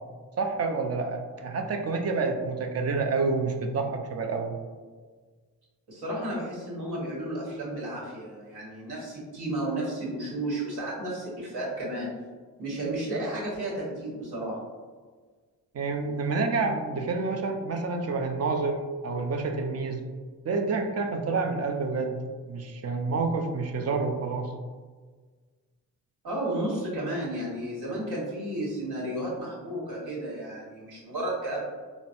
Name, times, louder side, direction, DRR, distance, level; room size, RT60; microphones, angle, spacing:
voice 1, 0.4-4.5 15.7-20.0 20.5-22.2 22.5-24.5, right 4 dB, 40° right, 5 dB, 0.5 m, -28 dB
voice 2, 5.9-12.1 12.6-14.6 26.2-31.6, right 1 dB, 70° right, -6 dB, 1.4 m, -32 dB
3.9 x 2.0 x 2.6 m, 1.4 s
supercardioid pair, 50°, 39 cm